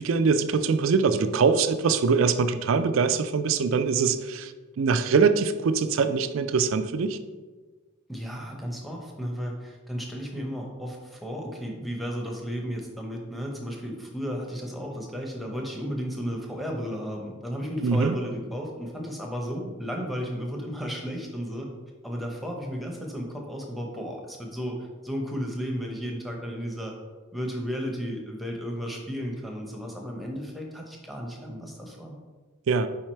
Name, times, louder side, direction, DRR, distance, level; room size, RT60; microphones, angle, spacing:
voice 1, 0.0-7.2 17.8-18.2 32.7-32.9, right 5 dB, 70° right, 11 dB, 0.4 m, -23 dB
voice 2, 8.1-21.7 22.0-26.9 27.3-32.1, equal, ahead, 0 dB, 0.7 m, -34 dB
4.7 x 4.6 x 4.4 m, 1.3 s
head